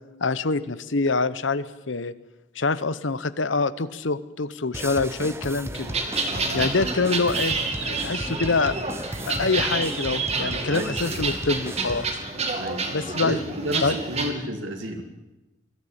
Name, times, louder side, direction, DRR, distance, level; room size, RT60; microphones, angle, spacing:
voice 1, 0.2-2.1 2.5-5.9 6.5-7.6 7.8-8.7 9.3-12.1 12.9-13.4 13.8-13.9, left 3 dB, 75° left, 16 dB, 0.9 m, -25 dB
sound 1, 4.7-12.1, right 1 dB, 15° right, 1.1 m, -35 dB
sound 2, 5.7-14.3, right 3 dB, 35° right, 2.6 m, -29 dB
voice 2, 6.3-6.7 10.7-10.9 11.2-11.3 12.6-12.8 13.2-15.0, right 1 dB, 75° right, 3 dB, 2.4 m, -31 dB
22.0 x 14.5 x 8.8 m, 1.0 s
head